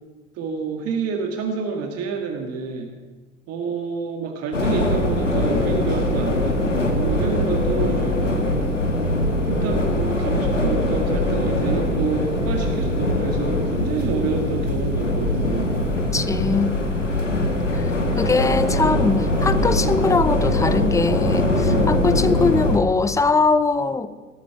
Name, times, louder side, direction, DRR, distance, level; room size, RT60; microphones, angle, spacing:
voice 1, 0.3-2.9 3.5-8.5 9.5-15.8, right 5 dB, 40° right, 3 dB, 1.9 m, -28 dB
sound 1, 4.5-22.8, left 1 dB, 90° left, 1.7 m, -22 dB
voice 2, 16.1-16.7 17.7-24.2, left 4 dB, 10° left, 14 dB, 0.7 m, -21 dB
18.5 x 13.5 x 4.9 m, 1.3 s
figure-of-eight pair, 70°, 36 cm